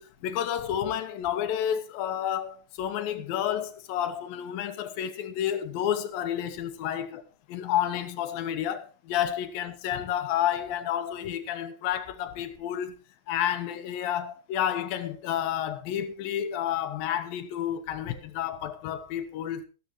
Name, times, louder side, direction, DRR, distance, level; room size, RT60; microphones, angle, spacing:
voice 1, 0.0-7.2 7.5-13.0 13.3-19.6, left 10 dB, 75° left, 2.8 m, -30 dB
13.5 x 13.5 x 3.0 m
omnidirectional pair, 4.2 m